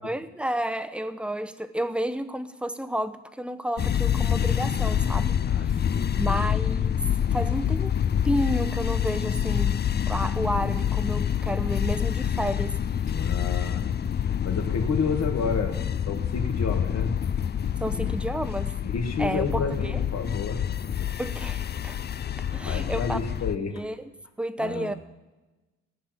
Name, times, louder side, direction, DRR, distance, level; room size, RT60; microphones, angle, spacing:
voice 1, 0.0-5.8 6.2-7.9 8.2-9.8 10.1-12.8 17.8-18.8 19.2-20.0 21.2-22.0 22.4-23.2 23.7-24.1 24.4-24.9, right 1 dB, 5° right, 12 dB, 0.8 m, -31 dB
sound 1, 3.8-23.6, left 9 dB, 35° left, 0.5 m, -27 dB
voice 2, 5.4-6.4 13.0-13.9 14.4-17.2 17.9-18.1 18.8-20.6 21.0-21.1 22.7-23.8 24.6-25.0, left 4 dB, 60° left, 4 dB, 2.3 m, -30 dB
17.0 x 6.1 x 8.9 m, 1.1 s
cardioid pair, 90°, 30 cm